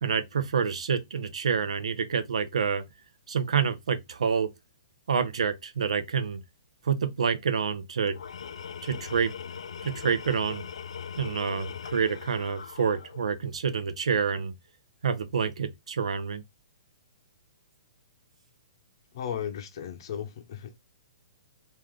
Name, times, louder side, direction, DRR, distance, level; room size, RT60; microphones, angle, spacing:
voice 1, 0.0-2.8 3.3-4.5 5.1-6.4 6.8-8.2 8.8-9.3 9.8-10.6 11.2-14.5 15.0-16.4, right 6 dB, 85° right, 0.7 m, -28 dB
Tools, 8.0-13.4, left 7 dB, 85° left, 0.4 m, -40 dB
voice 2, 19.1-20.8, left 9 dB, 50° left, 0.7 m, -35 dB
3.1 x 2.6 x 3.6 m
hypercardioid pair, 155°, 3 cm